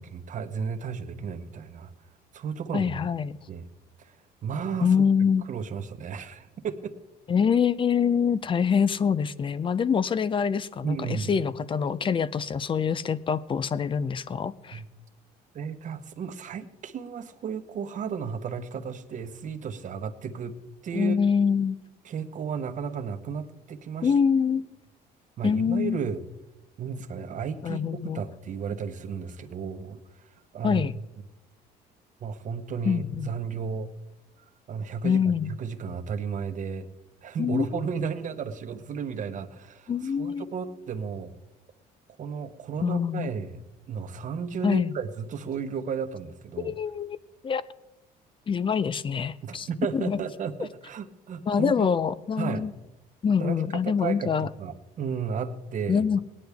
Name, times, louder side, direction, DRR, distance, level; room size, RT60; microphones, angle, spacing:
voice 1, 0.1-1.9 2.3-3.0 3.5-3.7 4.0-4.2 4.4-5.0 5.5-7.0 10.8-11.3 14.7-14.9 15.5-20.6 20.8-21.2 22.0-24.1 25.4-26.2 26.8-27.8 28.1-30.3 30.5-30.8 32.2-33.9 34.7-35.2 35.5-36.9 37.2-41.3 42.2-46.7 49.4-51.9 52.4-52.7 53.4-56.0, right 6 dB, 50° right, 8 dB, 1.0 m, -33 dB
voice 2, 2.7-3.3 4.8-5.5 7.3-14.8 20.9-21.8 24.0-24.7 25.4-26.0 27.6-28.2 30.6-30.9 32.9-33.3 35.0-35.5 37.4-37.8 39.9-40.5 42.8-43.3 44.6-44.9 46.6-47.2 47.4-47.6 48.5-49.7 49.9-50.2 51.5-52.7 53.2-54.5 55.9-56.2, left 6 dB, 30° left, 17 dB, 0.5 m, -25 dB
19.0 x 9.9 x 3.5 m, 0.99 s
cardioid pair, 110°, 17 cm